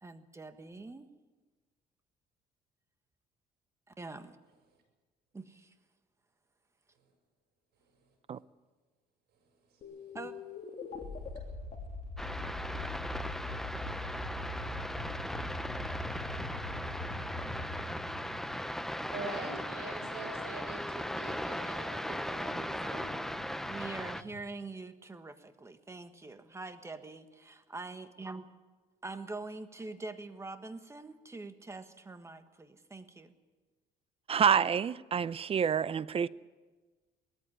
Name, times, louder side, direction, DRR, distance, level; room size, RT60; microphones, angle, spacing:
voice 1, 0.0-1.1 4.0-4.4 5.3-5.7 10.1-10.3 23.7-28.4 29.0-33.3, right 3 dB, 15° right, 1.5 m, -44 dB
sound 1, 9.8-19.1, left 2 dB, 40° left, 3.3 m, -42 dB
sound 2, 12.2-24.2, equal, ahead, 0.7 m, -38 dB
sound 3, 12.8-24.4, left 3 dB, 85° left, 2.8 m, -58 dB
voice 2, 19.1-23.2, right 3 dB, 70° right, 7.2 m, -43 dB
voice 3, 34.3-36.3, right 7 dB, 35° right, 0.5 m, -28 dB
19.0 x 14.0 x 9.9 m
cardioid pair, 110°, 17 cm